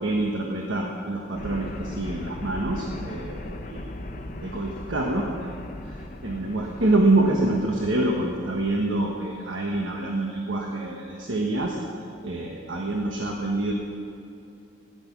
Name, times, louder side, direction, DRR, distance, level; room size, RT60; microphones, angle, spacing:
voice 1, 0.0-5.5 5.8-11.8 12.2-13.7, right 2 dB, 85° right, 0 dB, 1.3 m, -26 dB
sound 1, 1.3-8.8, left 1 dB, 45° left, 0.8 m, -38 dB
16.5 x 10.5 x 6.1 m, 2.8 s
head